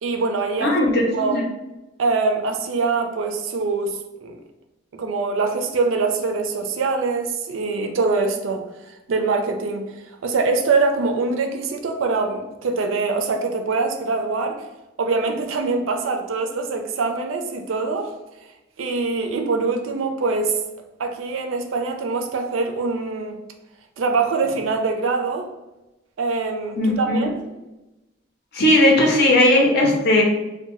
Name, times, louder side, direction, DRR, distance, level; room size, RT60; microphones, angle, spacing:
voice 1, 0.0-0.7 1.1-1.4 2.0-4.4 4.9-8.6 9.1-9.8 10.2-14.6 15.0-18.1 18.8-20.6 21.0-23.4 24.0-25.5 26.2-27.3, right 4 dB, 80° right, 4 dB, 0.4 m, -23 dB
voice 2, 0.6-1.4 26.8-27.3 28.5-30.2, left 1 dB, 55° left, -1 dB, 0.7 m, -17 dB
2.6 x 2.1 x 2.9 m, 1.0 s
head